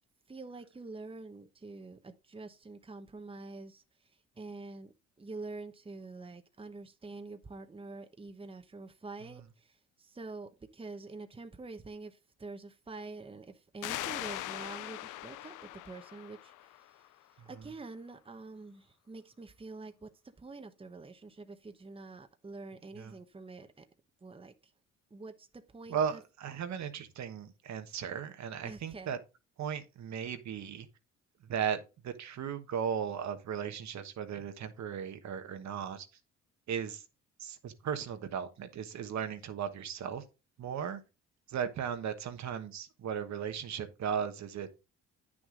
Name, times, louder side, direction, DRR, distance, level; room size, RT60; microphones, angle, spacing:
voice 1, 0.3-3.8 4.4-16.7 17.4-20.1 20.4-23.8 24.2-24.5 25.1-26.2 28.6-29.1, right 3 dB, 20° right, 1.0 m, -46 dB
sound 1, 13.8-17.2, left 15 dB, 85° left, 0.5 m, -41 dB
voice 2, 25.9-29.2 29.6-30.9 31.4-36.1 36.7-37.0 37.4-40.2 40.6-41.0 41.5-44.7, right 8 dB, 65° right, 1.3 m, -36 dB
9.4 x 6.3 x 3.8 m
cardioid pair, 90°, 30 cm